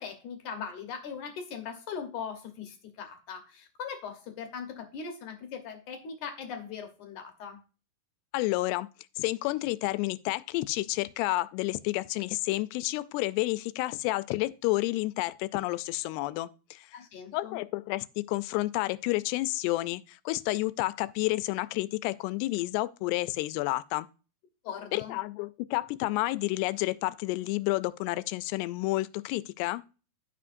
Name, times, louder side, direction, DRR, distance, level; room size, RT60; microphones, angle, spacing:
voice 1, 0.0-7.6 16.9-17.6 24.6-25.2, left 6 dB, 70° left, 2.0 m, -40 dB
voice 2, 8.3-8.9 9.2-16.9 17.3-24.1 24.9-29.8, left 19 dB, 90° left, 2.6 m, -30 dB
14.5 x 5.0 x 2.5 m
omnidirectional pair, 4.7 m